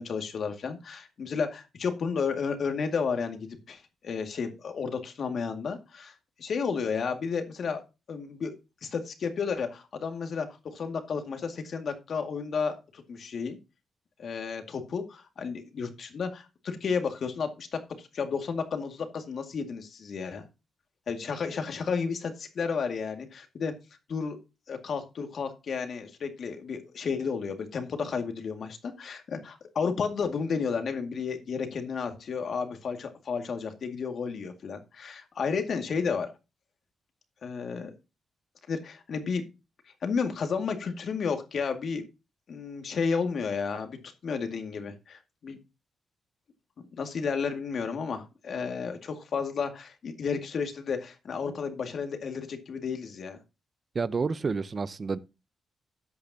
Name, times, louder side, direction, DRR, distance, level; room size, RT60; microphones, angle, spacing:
voice 1, 0.0-7.8 8.1-8.5 8.8-13.6 14.2-20.5 21.1-23.7 24.1-24.4 24.7-36.3 37.4-37.9 38.7-39.4 40.0-42.1 42.5-44.0 44.2-45.6 47.0-53.4, left 5 dB, 60° left, 2.1 m, -32 dB
voice 2, 53.9-55.2, right 4 dB, 40° right, 0.7 m, -29 dB
13.5 x 8.5 x 2.8 m
cardioid pair, 85°, 0 cm